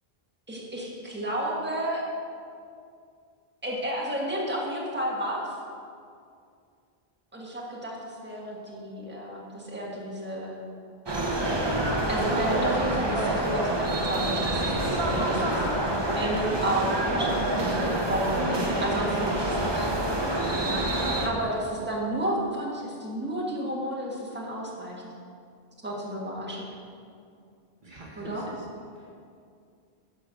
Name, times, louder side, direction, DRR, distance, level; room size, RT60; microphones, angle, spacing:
voice 1, 0.5-2.0 3.6-5.5 7.3-10.6 12.1-15.9 16.1-19.9 21.2-25.0 25.8-26.7 28.2-28.4, right 1 dB, 10° right, -4 dB, 1.5 m, -31 dB
sound 1, 11.1-21.3, right 1 dB, 30° right, 0.8 m, -27 dB
voice 2, 27.8-28.7 29.0-29.1, right 2 dB, 50° right, -3 dB, 1.3 m, -44 dB
10.5 x 4.6 x 6.4 m, 2.3 s
omnidirectional pair, 1.0 m